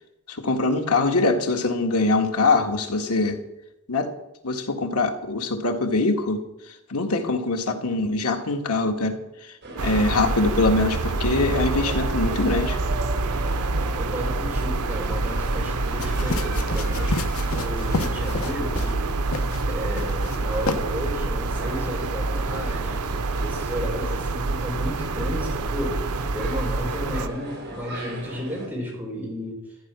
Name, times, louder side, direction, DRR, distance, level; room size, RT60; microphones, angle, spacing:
voice 1, 0.3-3.4 3.9-4.1 4.4-6.4 6.9-9.2 9.4-9.6 9.8-12.8, left 3 dB, 85° left, 5 dB, 1.9 m, -23 dB
sound 1, 9.6-28.7, right 2 dB, 50° right, 4.1 m, -38 dB
sound 2, 9.8-27.3, right 3 dB, 80° right, 0.8 m, -27 dB
voice 2, 13.9-17.2 17.5-19.0 19.7-23.1 23.4-26.0 26.3-29.6, equal, 10° right, -1 dB, 4.9 m, -33 dB
sound 3, 16.0-19.0 19.3-19.6 20.0-20.4 20.7-20.8, left 3 dB, 65° left, 1.1 m, -30 dB
14.0 x 10.5 x 6.2 m, 0.92 s
head